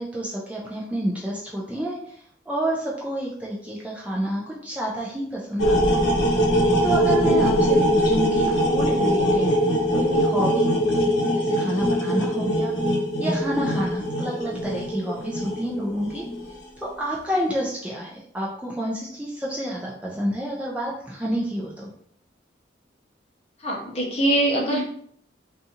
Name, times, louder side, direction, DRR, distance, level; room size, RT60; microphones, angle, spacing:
voice 1, 0.0-2.0 2.5-6.0 6.8-9.5 9.9-12.7 13.2-16.2 16.8-21.9, right 1 dB, 5° right, -5 dB, 0.3 m, -29 dB
sound 1, 5.6-16.5, equal, 70° left, 0.7 m, -22 dB
voice 2, 23.6-24.8, right 1 dB, 35° left, -2 dB, 0.7 m, -23 dB
2.6 x 2.4 x 2.7 m, 0.63 s
head